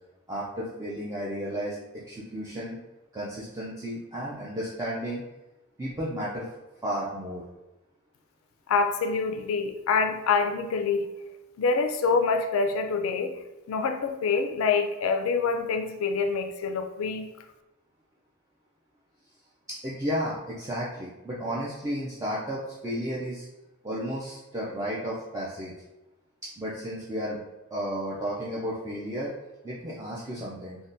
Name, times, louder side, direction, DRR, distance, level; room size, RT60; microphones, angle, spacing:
voice 1, 0.3-1.8 2.1-2.8 3.1-5.2 5.8-6.5 6.8-7.4 19.7-23.5 23.8-25.7 26.6-27.4 27.7-29.3 29.6-30.8, equal, 15° right, -7 dB, 0.3 m, -33 dB
voice 2, 8.7-11.0 11.6-13.3 13.7-17.3, left 4 dB, 70° left, 6 dB, 0.3 m, -26 dB
3.4 x 2.1 x 2.6 m, 1.0 s
head